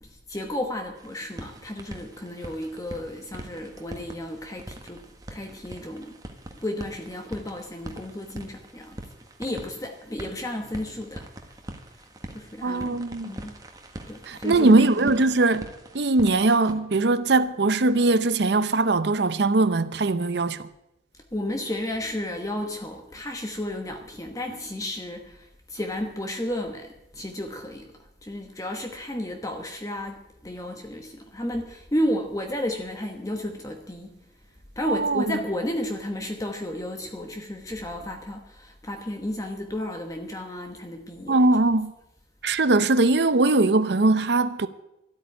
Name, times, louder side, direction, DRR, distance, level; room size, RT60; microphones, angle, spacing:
voice 1, 0.0-5.1 5.3-6.2 6.6-9.1 9.4-11.3 12.3-13.5 14.1-15.2 21.3-34.2 34.8-41.5, left 1 dB, 20° left, 1.1 m, -33 dB
sound 1, 0.9-16.8, right 1 dB, 20° right, 1.5 m, -43 dB
voice 2, 12.6-13.3 14.3-15.6 15.9-20.6 34.9-35.2 41.3-41.9 42.4-44.7, right 2 dB, 70° right, 0.7 m, -21 dB
13.0 x 8.7 x 9.7 m
head